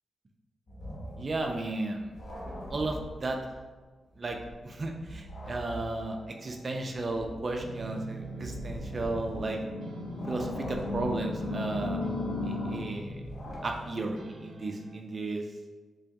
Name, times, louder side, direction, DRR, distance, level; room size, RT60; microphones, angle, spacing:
sound 1, 0.7-3.8 4.1-9.8 10.1-14.2, equal, 55° left, 0.9 m, -43 dB
voice 1, 1.2-2.1 2.4-3.4 4.2-4.4 4.6-9.6 10.3-12.0 12.4-13.2 13.6-15.4, right 2 dB, 30° right, 3 dB, 0.3 m, -34 dB
sound 2, 5.4-15.0, right 1 dB, 80° right, 0.6 m, -45 dB
sound 3, 6.7-12.8, left 2 dB, 80° left, 1.3 m, -37 dB
3.7 x 3.4 x 2.6 m, 1.3 s
wide cardioid pair, 170°, 0 cm